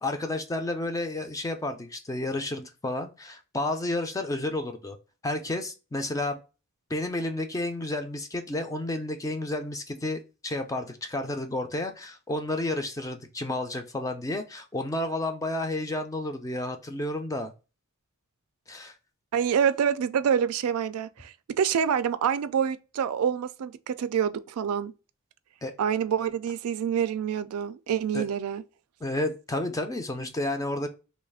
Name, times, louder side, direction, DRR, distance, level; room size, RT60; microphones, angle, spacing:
voice 1, 0.0-5.0 5.2-6.4 6.9-17.5 18.7-18.9 25.6-25.7 28.1-28.2 29.0-30.9, left 2 dB, 15° left, 0.4 m, -31 dB
voice 2, 19.3-24.9 25.8-28.6, right 8 dB, 90° right, 0.3 m, -27 dB
3.1 x 2.4 x 3.4 m
head